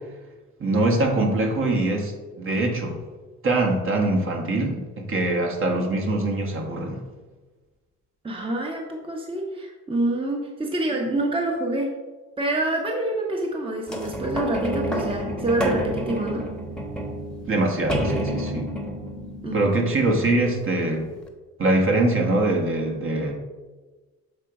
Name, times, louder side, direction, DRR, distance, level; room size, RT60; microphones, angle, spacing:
voice 1, 0.6-3.0 3.4-7.0 17.5-18.7 19.5-21.0 21.6-23.3, right 2 dB, 45° right, 1 dB, 1.3 m, -23 dB
voice 2, 8.2-11.9 12.4-16.4 19.4-19.7, right 1 dB, 15° right, 0 dB, 0.9 m, -26 dB
sound 1, 13.9-20.6 21.3-21.4, equal, 5° left, 1.0 m, -30 dB
6.7 x 3.8 x 4.7 m, 1.3 s
cardioid pair, 90°, 30 cm